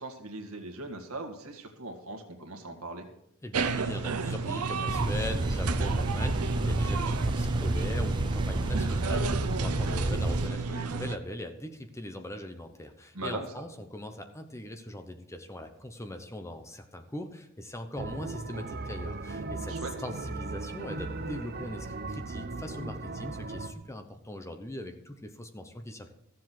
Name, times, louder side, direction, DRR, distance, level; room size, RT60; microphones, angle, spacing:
voice 1, 0.0-3.1 13.1-13.6 19.7-19.9, right 2 dB, 70° right, 5 dB, 2.0 m, -39 dB
voice 2, 3.4-19.7 20.0-26.1, left 1 dB, 15° left, 7 dB, 0.9 m, -40 dB
sound 1, 3.5-11.2, right 4 dB, 85° right, 0.7 m, -32 dB
sound 2, 4.9-10.5, right 1 dB, 20° right, 0.5 m, -30 dB
sound 3, 18.0-23.7, right 3 dB, 45° right, 0.8 m, -37 dB
14.0 x 7.5 x 6.0 m, 0.76 s
head